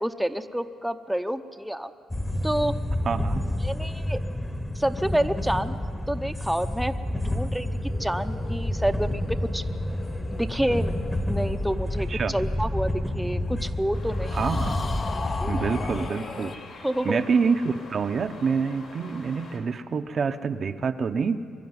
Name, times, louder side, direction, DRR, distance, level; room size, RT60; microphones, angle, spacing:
voice 1, 0.0-1.9 2.4-2.7 3.6-4.2 4.7-5.8 6.1-7.0 7.3-7.7 8.0-9.6 10.3-10.9 11.3-14.4 15.4-15.6 16.8-17.2, right 1 dB, 5° right, 7 dB, 0.7 m, -28 dB
sound 1, 2.1-16.1, left 1 dB, 15° left, 1.2 m, -29 dB
voice 2, 3.0-3.4 12.1-12.3 14.3-14.8 15.5-16.5 17.0-21.4, right 5 dB, 50° right, 8 dB, 0.8 m, -26 dB
sound 2, 7.5-13.1 14.2-16.6, left 4 dB, 40° left, 0.9 m, -39 dB
sound 3, 13.9-19.6, left 3 dB, 65° left, 4.4 m, -44 dB
23.0 x 11.5 x 9.6 m, 2.2 s
cardioid pair, 90°, 0 cm